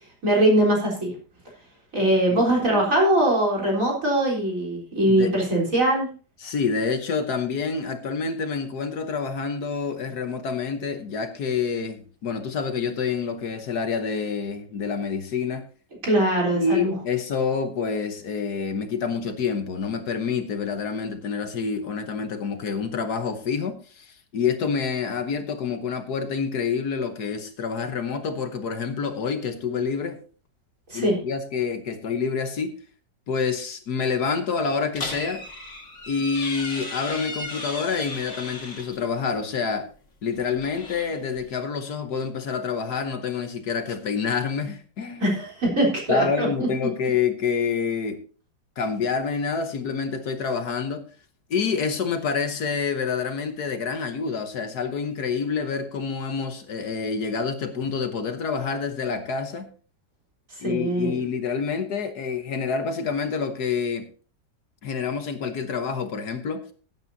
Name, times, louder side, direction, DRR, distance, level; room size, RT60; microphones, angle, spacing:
voice 1, 0.2-1.1 1.9-6.1 16.0-16.9 30.9-31.2 45.2-46.5 60.6-61.2, right 1 dB, 45° right, 4.3 m, -21 dB
voice 2, 2.3-2.9 5.1-5.3 6.4-15.7 16.5-30.2 30.9-32.7 33.3-35.4 36.1-39.9 40.2-45.3 46.1-48.2 48.8-51.1 51.5-59.7 60.6-64.1 64.8-66.6, left 5 dB, 65° left, 1.6 m, -27 dB
sound 1, 34.9-39.0 40.3-41.5, left 2 dB, 45° left, 2.3 m, -36 dB
18.5 x 9.0 x 2.7 m
omnidirectional pair, 1.9 m